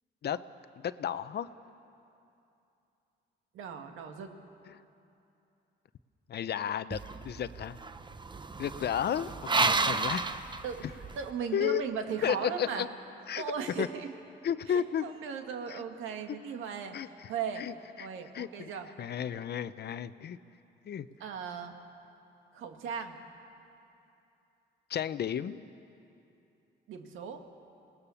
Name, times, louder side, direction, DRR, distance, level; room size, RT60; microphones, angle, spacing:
voice 1, 0.8-1.5 4.7-4.8 6.3-7.0 7.2-7.8 8.6-10.2 11.5-11.8 12.2-12.9 13.3-13.4 13.8-13.9 14.4-15.1 15.7-15.8 16.9-17.3 17.6-18.1 18.3-18.7 19.0-20.4 20.9-21.1 24.9-25.6, left 9 dB, 55° left, 14 dB, 0.7 m, -33 dB
voice 2, 3.5-4.3 9.7-10.0 10.6-10.8 11.2-12.9 13.4-14.1 14.7-17.0 17.3-17.6 18.0-18.9 21.2-21.8 22.5-23.2 26.9-27.4, right 7 dB, 85° right, 5 dB, 2.0 m, -37 dB
sound 1, 6.9-11.3, right 3 dB, 25° right, 0.8 m, -32 dB
26.5 x 19.0 x 7.1 m, 2.8 s
cardioid pair, 90°, 20 cm